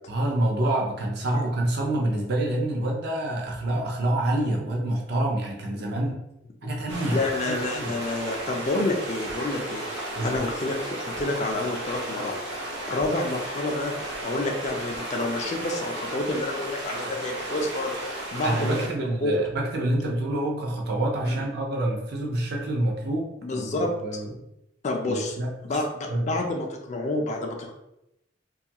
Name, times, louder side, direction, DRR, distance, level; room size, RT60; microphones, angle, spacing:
voice 1, 0.1-6.2 6.6-7.9 10.2-10.4 17.0-17.1 18.4-24.3 25.1-25.5 26.1-26.3, right 1 dB, 60° right, 0 dB, 0.5 m, -27 dB
sound 1, 6.9-18.9, right 1 dB, 85° right, 0.8 m, -34 dB
voice 2, 7.1-13.9 14.2-18.8 19.2-19.5 21.3-21.4 23.4-23.9 24.8-25.4 25.6-27.7, left 2 dB, 40° left, 2 dB, 0.3 m, -29 dB
2.6 x 2.3 x 2.8 m, 0.86 s
head